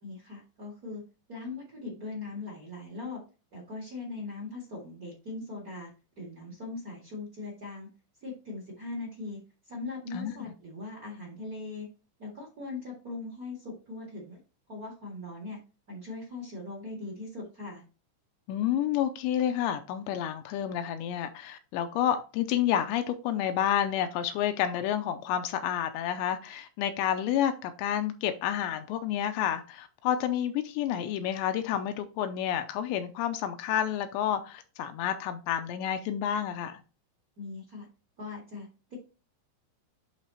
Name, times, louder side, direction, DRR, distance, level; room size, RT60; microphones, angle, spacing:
voice 1, 0.0-1.0 1.3-3.2 3.5-5.9 6.2-7.9 8.2-11.9 12.2-14.4 14.7-15.6 15.9-17.8 37.4-37.9 38.2-38.9, left 3 dB, 50° right, 1.0 m, -40 dB
voice 2, 18.5-36.8, left 10 dB, 85° left, 2.8 m, -29 dB
11.5 x 3.8 x 2.9 m
omnidirectional pair, 5.3 m